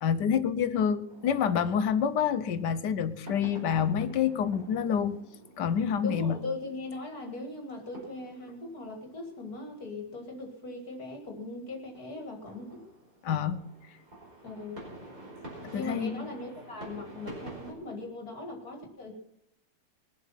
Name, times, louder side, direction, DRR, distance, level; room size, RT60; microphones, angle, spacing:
voice 1, 0.0-5.2 5.6-6.4 13.2-13.6 15.7-16.3, left 7 dB, 70° left, 12 dB, 1.5 m, -27 dB
sound 1, 1.1-17.7, right 1 dB, 50° right, 5.5 m, -49 dB
voice 2, 6.0-12.8 14.4-14.8 15.7-19.1, left 2 dB, 55° left, 2 dB, 2.5 m, -39 dB
21.5 x 7.8 x 5.8 m, 0.78 s
omnidirectional pair, 1.9 m